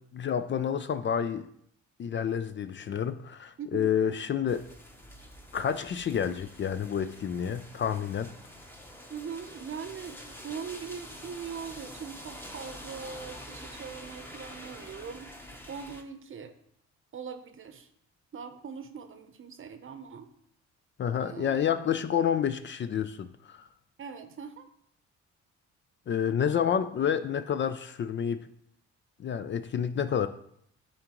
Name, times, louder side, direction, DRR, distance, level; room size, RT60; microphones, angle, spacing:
voice 1, 0.1-1.5 2.0-4.7 5.5-8.3 21.0-23.7 26.1-28.4 29.2-30.3, left 8 dB, 40° left, 11 dB, 0.4 m, -29 dB
voice 2, 3.6-3.9 9.1-15.4 15.7-16.5 17.1-17.9 18.3-20.3 21.2-21.7 24.0-24.7, right 6 dB, 45° right, 9 dB, 0.8 m, -41 dB
sound 1, 4.5-16.0, equal, 5° left, 0.9 m, -46 dB
11.0 x 3.8 x 3.0 m, 0.70 s
cardioid pair, 90°, 30 cm